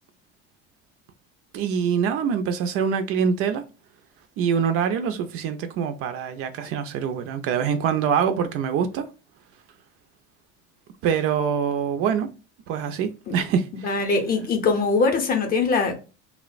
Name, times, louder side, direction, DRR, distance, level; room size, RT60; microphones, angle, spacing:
voice 1, 1.5-3.6 4.4-9.0 11.0-12.3 12.7-13.9, right 7 dB, 50° right, 0.4 m, -24 dB
voice 2, 13.7-15.9, left 4 dB, 30° left, 0.6 m, -22 dB
2.8 x 2.0 x 2.4 m
cardioid pair, 130°, 29 cm